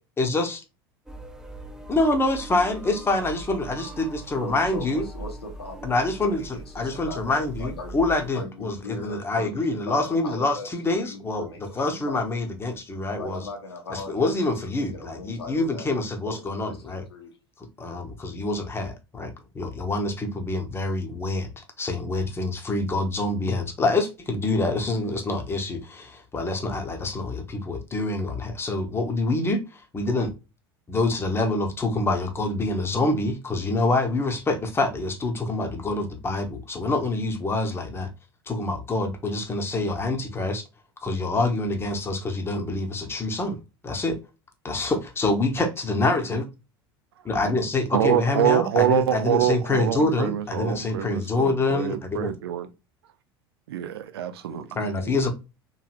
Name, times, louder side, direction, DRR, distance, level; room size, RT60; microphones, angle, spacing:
voice 1, 0.2-0.6 1.9-5.0 5.8-13.5 13.9-17.0 17.8-30.3 30.9-38.1 38.5-40.6 41.0-43.6 43.8-44.2 44.6-46.5 47.2-52.3 54.7-55.3, left 2 dB, 20° left, 0.8 m, -26 dB
sound 1, 1.1-8.3, right 2 dB, 5° right, 0.5 m, -40 dB
voice 2, 4.4-10.7 11.0-12.4 13.2-15.9 16.2-17.4 54.5-55.3, left 3 dB, 90° left, 0.9 m, -40 dB
voice 3, 47.9-52.7 53.7-54.7, right 11 dB, 80° right, 0.4 m, -25 dB
3.0 x 2.6 x 2.4 m
hypercardioid pair, 80°, 13 cm